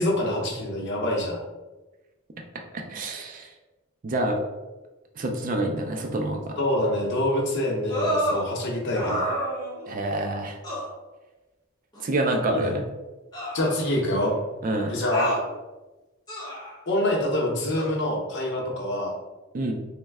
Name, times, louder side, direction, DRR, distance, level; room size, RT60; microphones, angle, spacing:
voice 1, 0.0-1.4 6.6-9.4 12.5-12.7 13.5-14.3 14.9-15.4 16.9-19.1, left 1 dB, 60° left, -1 dB, 0.7 m, -26 dB
voice 2, 2.7-3.5 4.0-4.5 5.2-6.6 9.9-10.6 12.0-12.9 14.6-14.9 19.5-19.7, right 1 dB, 40° right, 3 dB, 0.4 m, -27 dB
sound 1, 7.9-8.5 8.9-10.0 10.6-10.9 11.9-12.0 13.3-14.2 15.1-15.4 16.3-16.8 17.7-17.9, equal, 20° left, 0.9 m, -29 dB
3.1 x 2.1 x 3.4 m, 1.1 s
head